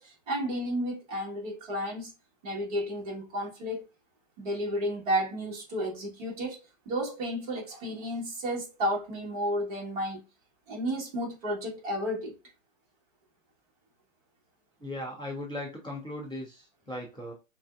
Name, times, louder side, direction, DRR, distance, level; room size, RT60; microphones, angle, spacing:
voice 1, 0.0-2.1 2.4-3.9 4.4-6.6 6.8-10.2 10.7-12.4, equal, 30° right, 1.5 m, -32 dB
voice 2, 14.8-17.3, left 1 dB, 5° left, 0.4 m, -38 dB
6.3 x 2.4 x 2.4 m
hypercardioid pair, 160°, 40 cm